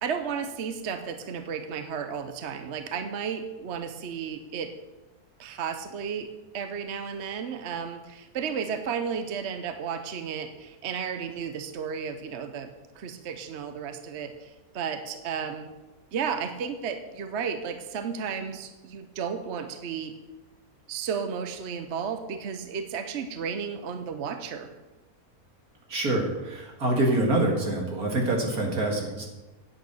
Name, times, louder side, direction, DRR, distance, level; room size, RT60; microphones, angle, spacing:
voice 1, 0.0-4.7 5.4-12.7 13.0-15.7 16.1-20.1 20.9-24.8, right 6 dB, 55° right, 8 dB, 0.9 m, -33 dB
voice 2, 25.9-29.3, right 2 dB, 80° right, 0 dB, 2.6 m, -26 dB
9.6 x 8.1 x 6.2 m, 1.1 s
omnidirectional pair, 1.5 m